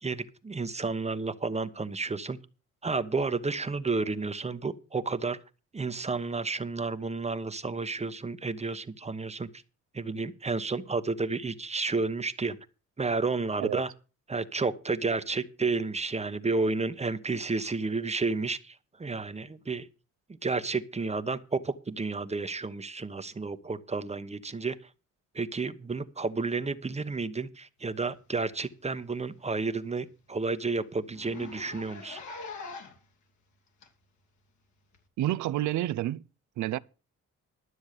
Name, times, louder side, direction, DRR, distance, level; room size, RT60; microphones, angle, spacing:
voice 1, 0.0-2.4 2.8-5.4 5.7-9.5 9.9-12.6 13.0-13.9 14.3-19.9 20.4-24.8 25.3-32.2, right 3 dB, 20° right, 1.0 m, -31 dB
Zipper (clothing), 28.6-28.7 29.0-29.1 29.5-29.6 30.0-30.1 30.3-30.5 31.1-33.1 33.8-33.9 34.9-35.0, left 4 dB, 70° left, 2.8 m, -43 dB
voice 2, 35.2-36.3 36.6-36.8, right 14 dB, 75° right, 0.6 m, -29 dB
12.5 x 7.1 x 6.6 m
cardioid pair, 90°, 30 cm